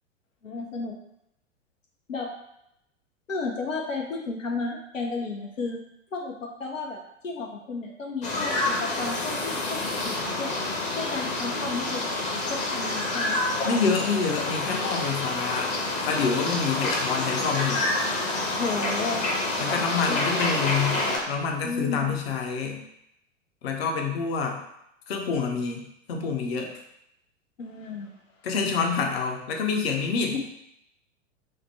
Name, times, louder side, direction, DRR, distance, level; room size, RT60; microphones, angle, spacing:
voice 1, 0.4-1.0 2.1-2.3 3.3-5.8 6.1-10.5 10.9-12.1 12.5-13.4 18.5-19.3 20.1-20.2 21.6-22.1 27.6-28.1 30.3-30.4, left 4 dB, 80° left, 1 dB, 0.7 m, -33 dB
sound 1, 8.2-21.2, left 2 dB, 20° left, 0.7 m, -28 dB
voice 2, 13.6-15.7 16.0-17.9 19.6-21.0 21.3-22.8 23.6-24.6 25.1-26.8 28.4-30.4, left 5 dB, 50° left, 2 dB, 0.8 m, -27 dB
4.9 x 2.1 x 4.5 m, 0.79 s
figure-of-eight pair, 100°, 38 cm